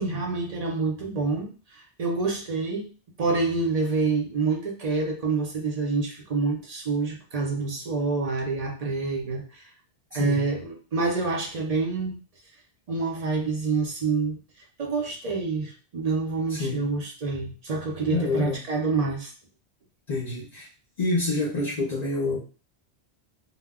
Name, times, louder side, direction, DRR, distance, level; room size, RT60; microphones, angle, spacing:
voice 1, 0.0-2.9 3.2-9.7 10.1-12.1 12.9-14.4 14.8-19.3, right 4 dB, 45° right, 0 dB, 0.6 m, -27 dB
voice 2, 16.5-16.8 18.1-18.6 20.1-20.7 21.0-22.4, left 2 dB, 50° left, -2 dB, 0.6 m, -27 dB
2.1 x 2.1 x 3.4 m, 0.36 s
omnidirectional pair, 1.1 m